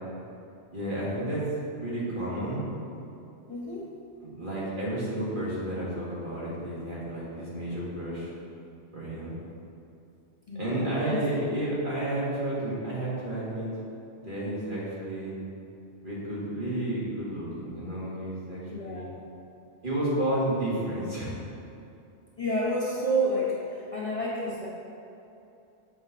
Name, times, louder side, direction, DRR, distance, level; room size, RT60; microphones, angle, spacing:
voice 1, 0.7-1.5 1.8-2.7 4.2-8.3 8.9-9.3 10.6-13.7 14.2-15.4 16.0-19.1 19.8-21.4, right 1 dB, 45° right, -8 dB, 1.9 m, -31 dB
voice 2, 3.5-3.9 10.5-10.8 11.0-11.6 18.7-19.1 22.4-24.7, right 1 dB, 30° left, -7 dB, 1.0 m, -30 dB
7.0 x 5.1 x 4.1 m, 2.8 s
omnidirectional pair, 1.2 m